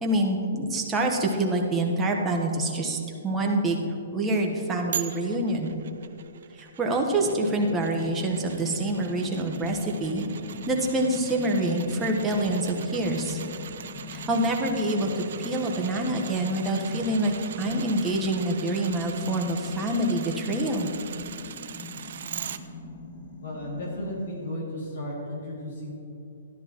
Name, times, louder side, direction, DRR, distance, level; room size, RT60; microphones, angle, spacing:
voice 1, 0.0-3.0 3.2-3.8 4.1-5.7 6.6-10.2 10.7-13.4 14.1-17.3 17.6-20.9, right 1 dB, 15° right, 0 dB, 1.1 m, -26 dB
sound 1, 4.9-22.6 23.0-23.1, right 8 dB, 65° right, 0.5 m, -41 dB
sound 2, 7.2-24.2, left 4 dB, 30° left, 1.2 m, -41 dB
voice 2, 23.4-25.9, left 1 dB, 75° left, -4 dB, 2.4 m, -34 dB
12.5 x 11.0 x 3.0 m, 2.7 s
hypercardioid pair, 140°, 0 cm